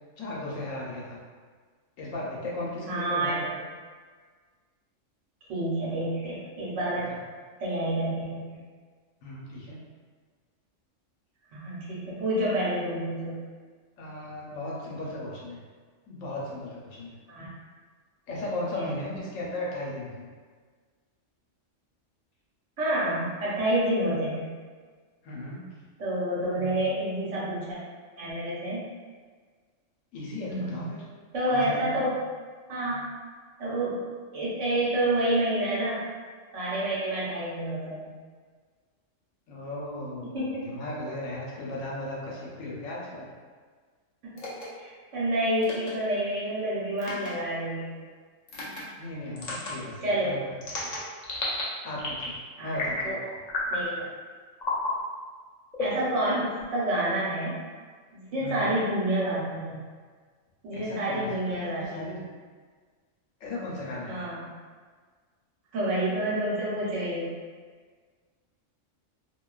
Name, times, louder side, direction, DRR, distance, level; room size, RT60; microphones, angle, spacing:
voice 1, 0.2-1.2 2.0-3.7 7.1-7.2 9.2-9.8 14.0-15.6 16.1-17.1 18.3-20.3 25.2-25.7 30.1-31.0 31.5-32.1 39.5-43.3 49.0-50.5 50.8-50.9 51.8-53.2 58.4-58.7 60.7-62.3 63.4-64.2, left 1 dB, 80° left, -5 dB, 1.0 m, -36 dB
voice 2, 2.9-3.4 5.5-7.1 7.6-8.6 11.5-13.4 17.3-17.5 18.7-18.9 22.8-24.5 26.0-27.8 28.2-28.8 30.5-30.9 31.3-32.1 32.7-33.0 33.6-34.1 34.3-36.0 36.5-38.1 40.2-40.7 44.3-44.5 44.8-47.9 50.0-50.3 52.6-53.2 53.7-54.1 55.8-57.6 58.1-59.8 60.6-62.1 64.1-64.5 65.7-67.4, right 1 dB, 70° right, -8 dB, 1.1 m, -28 dB
sound 1, 44.4-44.7 45.6-45.9 47.0-47.3 48.5-48.8 49.4-49.7 50.6-51.6 52.0-52.4 52.7-53.1 53.5-53.9 54.6-54.9 55.7-56.6, left 2 dB, 55° left, 0.4 m, -31 dB
2.5 x 2.2 x 2.3 m, 1.5 s
omnidirectional pair, 1.3 m